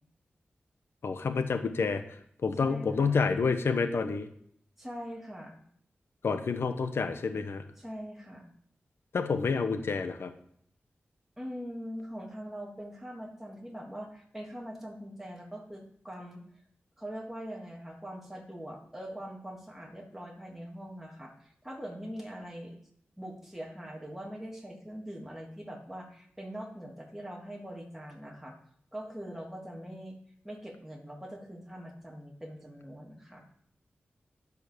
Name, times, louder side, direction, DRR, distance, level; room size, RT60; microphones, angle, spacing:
voice 1, 1.0-2.0 2.4-4.3 6.2-7.6 9.1-10.3, left 5 dB, 80° left, 9 dB, 1.1 m, -28 dB
voice 2, 2.6-3.2 4.8-5.6 7.8-8.5 11.4-16.4 17.0-22.8 23.2-28.6 28.9-30.2 30.4-33.4, equal, 5° right, -1 dB, 3.1 m, -42 dB
11.0 x 5.6 x 6.9 m, 0.67 s
cardioid pair, 50°, 4 cm